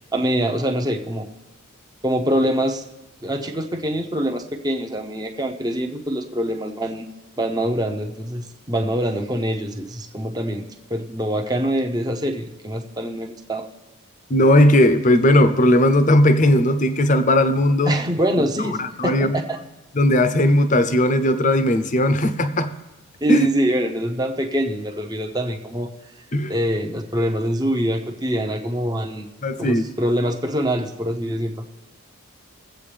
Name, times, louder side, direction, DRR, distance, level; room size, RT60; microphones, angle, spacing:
voice 1, 0.1-1.3 2.0-2.8 3.2-7.1 7.4-13.7 17.8-19.6 23.2-25.9 26.5-29.3 29.6-31.7, equal, 20° right, 3 dB, 0.8 m, -24 dB
voice 2, 14.3-18.0 18.8-19.4 19.9-22.7 23.3-23.5 26.3-26.5 29.4-29.9, left 1 dB, 35° left, 11 dB, 0.7 m, -17 dB
22.5 x 8.1 x 3.4 m, 1.0 s
head